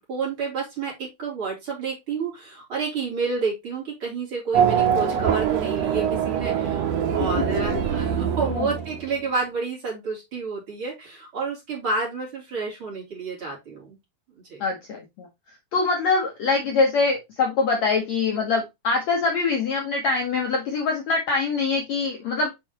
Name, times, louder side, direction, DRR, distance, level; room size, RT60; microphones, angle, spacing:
voice 1, 0.0-14.0 14.5-14.6, right 4 dB, 35° right, -3 dB, 3.7 m, -30 dB
Race car auto racing / Accelerating revving vroom, 4.5-9.2, right 8 dB, 85° right, 1.4 m, -23 dB
voice 2, 7.2-7.8 8.5-8.7 14.6-15.3 15.7-22.5, left 4 dB, 60° left, 1 dB, 1.9 m, -24 dB
6.8 x 5.3 x 2.9 m, 0.20 s
omnidirectional pair, 4.4 m